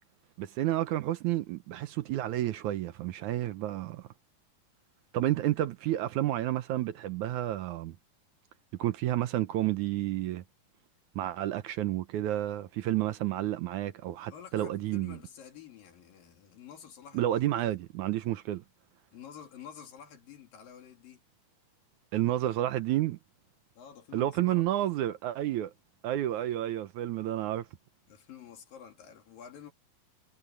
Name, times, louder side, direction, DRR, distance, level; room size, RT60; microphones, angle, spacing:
voice 1, 0.4-4.1 5.1-8.0 8.8-10.4 11.2-15.2 17.1-18.6 22.1-23.2 24.1-25.7 26.0-27.7, right 13 dB, 70° right, 2.0 m, -30 dB
voice 2, 14.3-17.5 19.1-21.2 23.8-24.6 28.1-29.7, left 8 dB, 85° left, 4.5 m, -49 dB
omnidirectional pair, 3.9 m